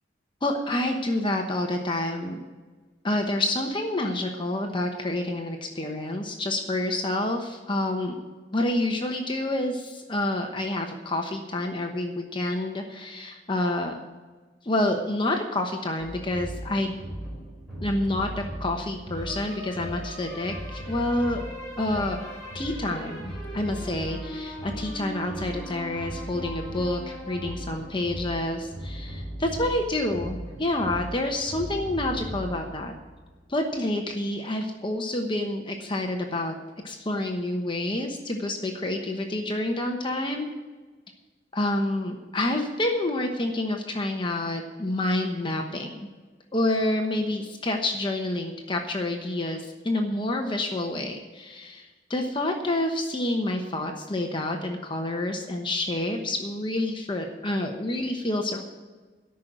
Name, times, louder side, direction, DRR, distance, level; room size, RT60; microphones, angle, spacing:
voice 1, 0.4-2.4 3.0-8.2 8.5-14.0 14.6-16.9 17.8-21.4 21.8-32.9 33.5-36.5 36.8-40.5 41.5-46.1 46.5-58.6, left 1 dB, 25° left, 3 dB, 1.0 m, -28 dB
sound 1, 16.0-33.6, equal, 5° left, 4.8 m, -37 dB
13.0 x 6.3 x 9.2 m, 1.3 s
head